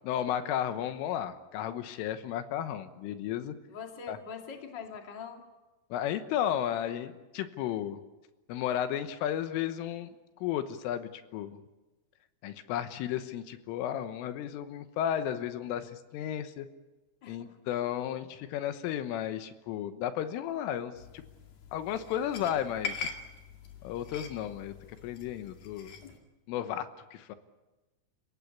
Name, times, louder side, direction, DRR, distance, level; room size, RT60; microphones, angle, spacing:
voice 1, 0.0-3.6 4.1-4.2 5.9-8.0 8.5-11.6 12.4-16.7 17.3-21.2 21.7-23.1 23.8-24.7 25.0-25.9 26.5-27.4, left 10 dB, 80° left, 10 dB, 3.6 m, -33 dB
voice 2, 3.7-5.4 17.2-17.6, left 6 dB, 30° left, 3 dB, 2.1 m, -43 dB
sound 1, 21.0-26.2, left 5 dB, 55° left, 3.7 m, -43 dB
29.0 x 17.0 x 8.5 m, 1.1 s
omnidirectional pair, 5.8 m